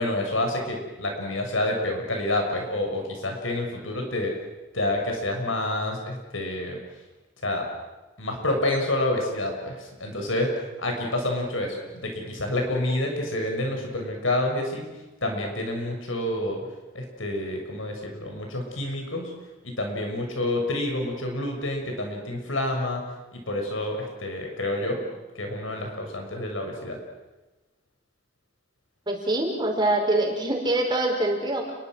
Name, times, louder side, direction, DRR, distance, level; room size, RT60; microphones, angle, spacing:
voice 1, 0.0-4.3 4.7-6.8 7.4-7.7 8.2-14.8 15.2-16.6 16.9-19.3 19.6-23.0 23.3-25.1 25.3-27.0, left 1 dB, 85° left, 2 dB, 6.6 m, -28 dB
voice 2, 29.1-31.7, right 1 dB, 25° right, 1 dB, 5.0 m, -24 dB
30.0 x 22.5 x 6.5 m, 1.1 s
head